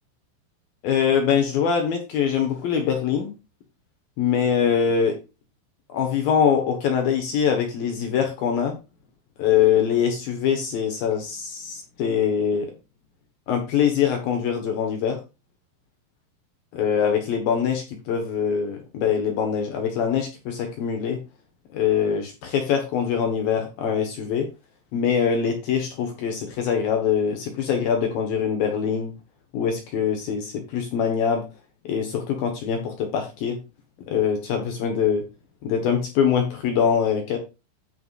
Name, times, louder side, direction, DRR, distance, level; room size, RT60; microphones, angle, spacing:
voice 1, 0.8-3.3 4.2-5.1 5.9-8.8 9.4-12.7 13.5-15.2 16.7-21.2 21.7-24.5 24.9-29.1 29.5-31.4 31.8-33.6 34.1-35.2 35.6-37.4, left 7 dB, 70° left, 4 dB, 2.3 m, -23 dB
14.5 x 5.6 x 2.4 m, 0.28 s
omnidirectional pair, 5.7 m